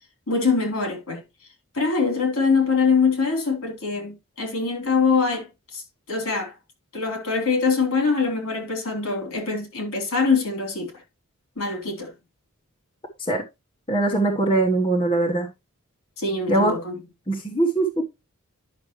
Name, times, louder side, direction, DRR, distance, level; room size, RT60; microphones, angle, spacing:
voice 1, 0.3-1.2 1.7-5.5 5.7-5.8 6.1-6.5 6.9-10.9 11.6-12.1 16.2-17.0, left 4 dB, 70° left, 3.6 m, -23 dB
voice 2, 13.9-15.5 16.5-16.7 17.3-18.0, right 2 dB, 25° left, 1.2 m, -21 dB
10.5 x 6.1 x 3.1 m
head